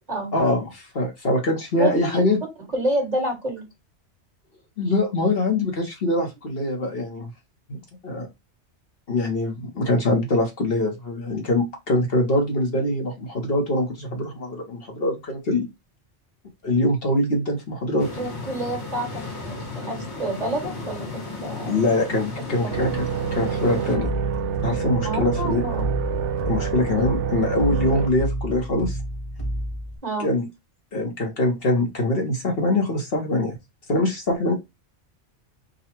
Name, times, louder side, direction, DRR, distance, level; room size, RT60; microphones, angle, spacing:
voice 1, 0.3-2.4 4.8-7.3 7.7-8.3 9.1-15.7 16.6-18.1 21.6-22.9 23.3-24.1 24.6-25.6 26.4-29.0 30.2-30.5 30.9-33.6 33.9-34.5, left 1 dB, 55° left, 1 dB, 1.3 m, -23 dB
voice 2, 1.8-2.2 2.7-3.7 18.2-21.1 21.4-21.9 22.6-22.8 25.0-25.9 30.0-30.3, right 1 dB, 35° right, 0 dB, 1.8 m, -28 dB
sound 1, 18.0-24.0, left 3 dB, 70° left, 1.8 m, -35 dB
sound 2, 22.7-28.1, right 7 dB, 85° right, 0.9 m, -27 dB
sound 3, 23.9-30.0, right 1 dB, 30° left, 1.1 m, -31 dB
3.8 x 2.4 x 4.4 m, 0.21 s
omnidirectional pair, 1.2 m